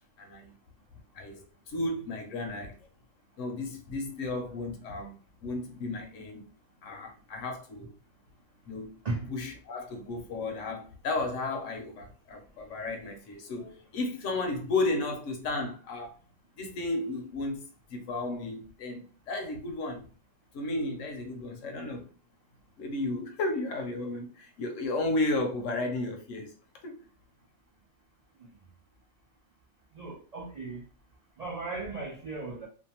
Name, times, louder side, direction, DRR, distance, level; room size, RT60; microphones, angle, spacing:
voice 1, 0.2-0.5 1.1-2.8 3.4-6.4 6.8-7.9 8.7-9.0 9.3-16.2 16.6-20.1 20.5-22.1 22.8-26.5 26.8-27.0, left 2 dB, 70° left, 0.9 m, -33 dB
voice 2, 29.9-30.8 31.4-32.7, right 3 dB, 80° right, 0.3 m, -36 dB
2.6 x 2.2 x 2.8 m
omnidirectional pair, 1.5 m